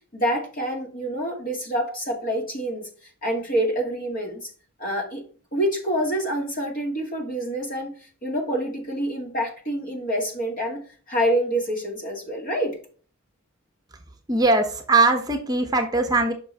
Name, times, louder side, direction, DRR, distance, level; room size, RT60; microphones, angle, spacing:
voice 1, 0.1-2.9 3.2-4.5 4.8-5.2 5.5-8.0 8.2-12.8, equal, 45° left, 1 dB, 2.1 m, -27 dB
voice 2, 14.3-16.3, right 3 dB, 20° right, 4 dB, 0.9 m, -20 dB
6.0 x 5.9 x 3.5 m, 0.41 s
head